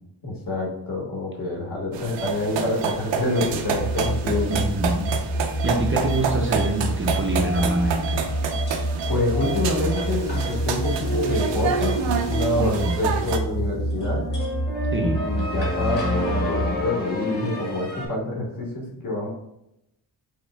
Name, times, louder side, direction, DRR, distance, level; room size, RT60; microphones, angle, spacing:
voice 1, 0.2-4.6 9.1-14.2 15.0-19.3, left 2 dB, 50° left, -2 dB, 1.6 m, -27 dB
sound 1, 1.9-13.4, right 6 dB, 85° right, 0.7 m, -29 dB
sound 2, 3.7-16.8, right 1 dB, 80° left, 0.9 m, -27 dB
voice 2, 4.5-5.1 5.6-8.2 12.6-13.0 14.9-15.2, right 1 dB, 30° right, 1 dB, 0.5 m, -25 dB
sound 3, 7.4-18.1, equal, 25° left, 1.5 m, -31 dB
5.7 x 3.6 x 2.2 m, 0.83 s
wide cardioid pair, 140°, 42 cm